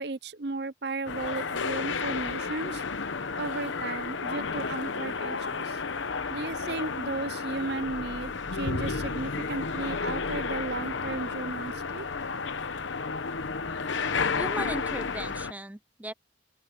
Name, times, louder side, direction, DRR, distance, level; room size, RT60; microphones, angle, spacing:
voice 1, 0.0-2.8 3.4-5.8 6.3-12.0, right 3 dB, 60° right, 0.7 m, -35 dB
sound 1, 1.1-15.5, left 4 dB, 80° left, 1.0 m, -32 dB
voice 2, 14.3-16.1, right 1 dB, 10° right, 0.6 m, -37 dB
open air
head